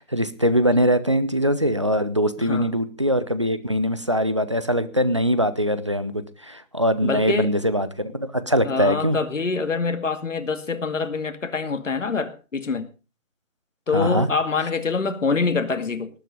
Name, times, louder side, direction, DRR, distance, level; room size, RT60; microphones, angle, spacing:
voice 1, 0.0-9.2 13.9-14.3, equal, 20° right, 0.7 m, -22 dB
voice 2, 2.4-2.7 7.0-7.5 8.6-12.9 13.9-16.1, left 4 dB, 65° left, 2.3 m, -25 dB
19.0 x 9.1 x 5.3 m
figure-of-eight pair, 165°, 41 cm